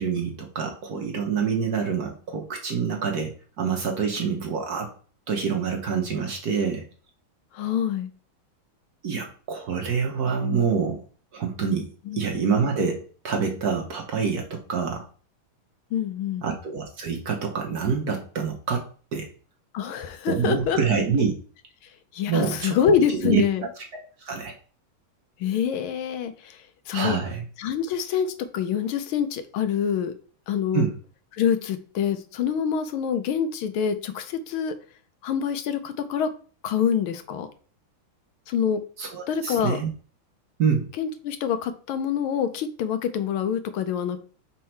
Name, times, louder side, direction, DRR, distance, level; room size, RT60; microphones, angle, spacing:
voice 1, 0.0-4.9 5.3-6.8 9.0-11.0 11.3-11.9 12.1-15.0 16.4-18.9 19.1-19.3 20.3-21.3 22.3-22.8 23.1-23.4 23.9-24.5 26.9-27.4 30.7-31.0 39.0-39.9 40.6-40.9, right 6 dB, 55° right, 2 dB, 1.2 m, -26 dB
voice 2, 7.5-8.1 12.1-12.2 15.9-16.5 19.7-20.8 22.1-23.6 25.4-27.2 27.6-30.1 30.5-30.9 31.3-34.7 35.2-36.3 36.6-37.5 38.5-38.8 39.3-39.8 41.0-44.2, left 8 dB, 80° left, 9 dB, 1.5 m, -26 dB
5.5 x 4.3 x 4.4 m, 0.41 s
omnidirectional pair, 2.4 m